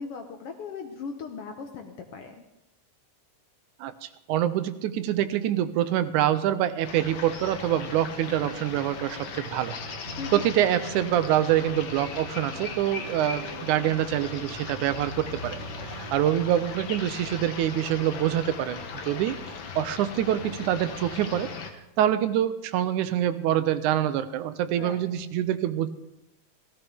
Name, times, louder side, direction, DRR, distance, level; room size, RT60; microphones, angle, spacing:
voice 1, 0.0-2.4 10.2-10.5 24.8-25.0, left 5 dB, 70° left, 4 dB, 1.5 m, -38 dB
voice 2, 3.8-9.8 10.3-15.6 15.9-19.4 19.8-21.5 22.0-25.9, right 11 dB, 85° right, 12 dB, 2.1 m, -25 dB
sound 1, 6.8-21.7, left 5 dB, 85° left, 0.9 m, -38 dB
sound 2, 7.6-17.1, right 2 dB, 45° right, 1.0 m, -44 dB
16.5 x 15.5 x 3.5 m, 0.89 s
omnidirectional pair, 3.5 m